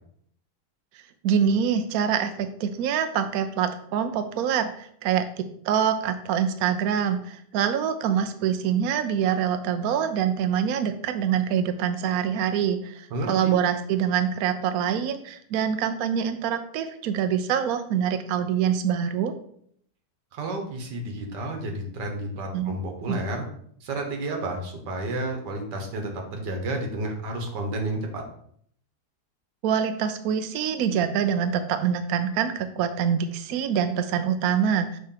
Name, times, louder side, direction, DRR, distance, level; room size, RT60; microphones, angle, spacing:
voice 1, 0.9-19.3 22.5-22.7 23.1-23.2 29.6-35.0, right 8 dB, 70° right, 9 dB, 1.0 m, -25 dB
voice 2, 13.1-13.5 20.3-23.5 23.8-28.2, right 1 dB, 85° right, 3 dB, 1.8 m, -31 dB
6.4 x 3.1 x 5.6 m, 0.65 s
omnidirectional pair, 1.8 m